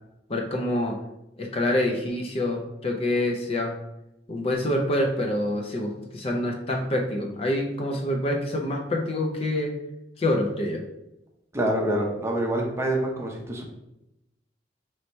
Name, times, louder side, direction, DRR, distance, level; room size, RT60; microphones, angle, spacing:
voice 1, 0.3-1.0 1.4-3.7 4.3-9.7 10.2-10.8, left 1 dB, 35° left, 1 dB, 0.5 m, -26 dB
voice 2, 11.5-13.6, right 1 dB, 15° right, -1 dB, 0.7 m, -26 dB
3.1 x 2.7 x 4.4 m, 0.88 s
head